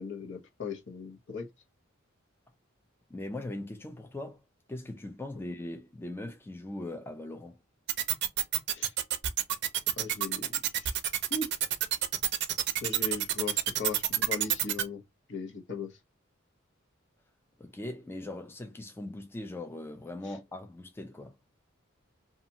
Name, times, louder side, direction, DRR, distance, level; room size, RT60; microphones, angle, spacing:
voice 1, 0.0-1.5 8.7-8.9 10.0-11.0 11.3-11.5 12.8-15.0 15.3-16.0 20.2-20.3, left 4 dB, 65° left, 0.8 m, -38 dB
voice 2, 3.1-4.4 4.7-7.6 17.6-21.4, left 1 dB, 10° left, 0.3 m, -40 dB
sound 1, 7.9-14.8, right 11 dB, 60° right, 0.4 m, -28 dB
2.8 x 2.3 x 2.7 m
head